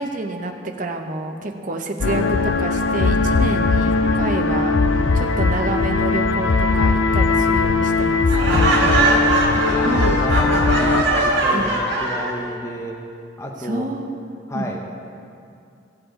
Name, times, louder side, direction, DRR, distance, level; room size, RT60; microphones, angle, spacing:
voice 1, 0.0-4.7 5.1-8.5 9.8-10.2 11.5-11.7 13.6-14.7, right 2 dB, 40° right, 3 dB, 0.8 m, -28 dB
sound 1, 2.0-11.0, left 3 dB, 80° left, 0.6 m, -19 dB
voice 2, 4.9-5.2 8.5-13.0 13.4-13.9 14.5-14.8, equal, 15° left, 0 dB, 0.7 m, -31 dB
Laughter, 8.3-12.3, right 2 dB, 60° right, 2.1 m, -20 dB
17.0 x 7.5 x 3.8 m, 2.5 s
head